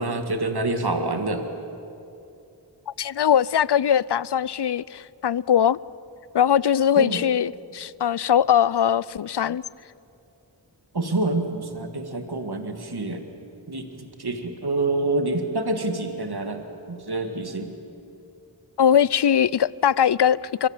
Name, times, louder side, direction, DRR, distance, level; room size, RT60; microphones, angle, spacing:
voice 1, 0.0-1.4 7.0-7.2 10.9-13.2 13.7-16.6 16.9-17.7, right 2 dB, 60° right, 2.0 m, -27 dB
voice 2, 3.0-5.8 6.3-9.6 18.8-20.7, left 9 dB, 65° left, 0.5 m, -21 dB
25.5 x 24.0 x 7.3 m
wide cardioid pair, 45°, 44 cm